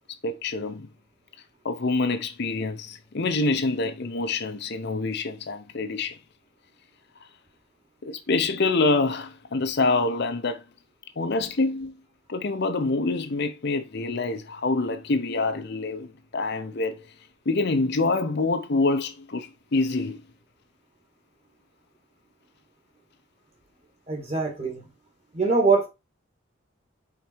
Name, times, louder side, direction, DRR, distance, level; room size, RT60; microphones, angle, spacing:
voice 1, 0.2-0.9 1.6-6.2 8.0-10.6 11.2-11.9 12.3-17.0 17.5-20.2, left 3 dB, 50° left, 0.7 m, -26 dB
voice 2, 24.1-24.9 25.3-25.9, right 4 dB, 30° right, 1.8 m, -23 dB
5.1 x 4.2 x 4.5 m
head